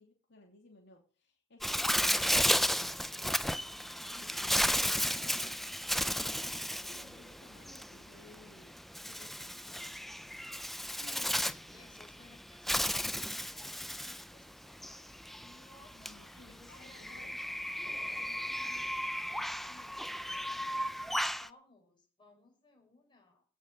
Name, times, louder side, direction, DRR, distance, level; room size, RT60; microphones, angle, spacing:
voice 1, 0.0-2.9 4.0-4.3 4.7-5.6 6.0-10.2 11.0-11.3 15.9-17.3, left 2 dB, 65° left, 2 dB, 2.7 m, -58 dB
Bird, 1.6-21.5, equal, ahead, 0.5 m, -34 dB
voice 2, 4.1-4.8 11.1-17.4 18.0-23.4, left 2 dB, 25° left, 2 dB, 5.9 m, -61 dB
17.0 x 7.0 x 6.6 m, 0.38 s
head